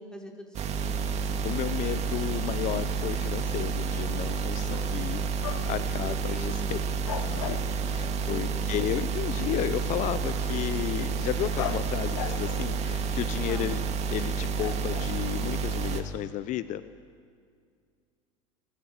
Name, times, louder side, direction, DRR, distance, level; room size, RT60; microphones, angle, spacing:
voice 1, 0.0-1.3 5.6-6.9 8.2-8.8 13.4-13.8, equal, 5° left, 1 dB, 4.6 m, -43 dB
sound 1, 0.5-16.0, right 5 dB, 45° right, 2.4 m, -30 dB
voice 2, 1.4-5.3 5.7-6.8 7.2-13.8 14.1-16.8, left 12 dB, 50° left, 14 dB, 0.9 m, -33 dB
sound 2, 3.0-3.1 4.3-5.0 5.4-5.9 6.2-6.4 7.0-8.2 11.6-13.6 14.6-15.8, left 12 dB, 80° left, 1.3 m, -39 dB
27.0 x 17.0 x 8.1 m, 2.2 s
hypercardioid pair, 85°, 16 cm